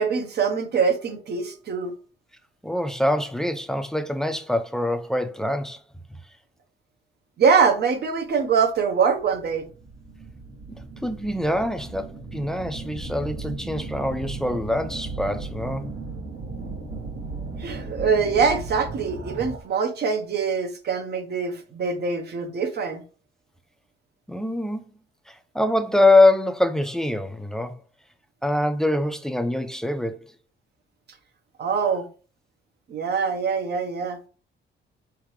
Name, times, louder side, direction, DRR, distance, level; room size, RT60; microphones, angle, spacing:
voice 1, 0.0-1.9 7.4-9.7 17.6-23.0 31.6-32.1 32.9-34.2, right 5 dB, 55° right, 1.0 m, -23 dB
voice 2, 2.6-5.8 10.7-15.9 24.3-24.8 25.3-27.8 28.4-30.3, left 2 dB, 5° left, 0.6 m, -24 dB
sound 1, 8.4-8.5 9.2-19.8, right 3 dB, 85° right, 1.5 m, -36 dB
4.6 x 3.6 x 3.1 m
cardioid pair, 90°, 20 cm